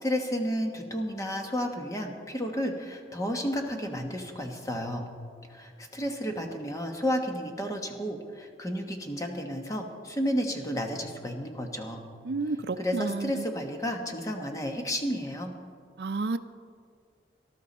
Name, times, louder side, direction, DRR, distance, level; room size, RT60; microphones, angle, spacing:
voice 1, 0.0-5.1 5.5-12.0 12.8-15.5, equal, 20° left, 3 dB, 1.2 m, -32 dB
voice 2, 12.2-13.4 16.0-16.4, right 3 dB, 65° right, 11 dB, 0.5 m, -31 dB
18.5 x 12.5 x 4.2 m, 2.2 s
head